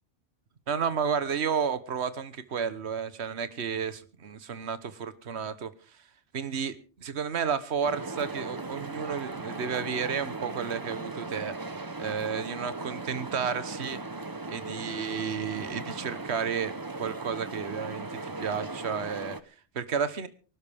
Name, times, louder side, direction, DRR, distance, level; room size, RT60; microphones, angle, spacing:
voice 1, 0.7-6.0 6.3-11.5 12.0-14.0 14.5-16.7 17.0-20.3, right 6 dB, 70° right, 1.5 m, -32 dB
sound 1, 7.8-19.4, right 3 dB, 20° right, 0.8 m, -38 dB
24.5 x 12.0 x 3.5 m
omnidirectional pair, 1.2 m